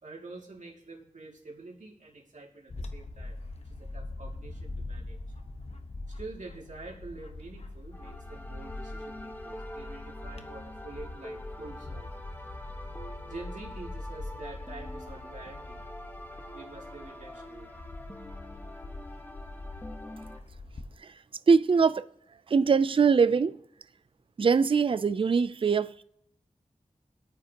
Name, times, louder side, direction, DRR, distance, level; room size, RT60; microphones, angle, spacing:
voice 1, 0.0-5.7 6.0-12.1 13.2-15.8 16.3-17.7, right 3 dB, 75° right, 2.4 m, -47 dB
Bird / Wind, 2.7-21.0, left 2 dB, 55° left, 1.1 m, -43 dB
sound 1, 7.9-20.4, left 1 dB, 15° left, 1.3 m, -45 dB
voice 2, 21.5-22.1 22.5-23.6 24.4-26.0, right 5 dB, 45° right, 0.4 m, -23 dB
24.0 x 9.1 x 2.9 m
wide cardioid pair, 60°, 13 cm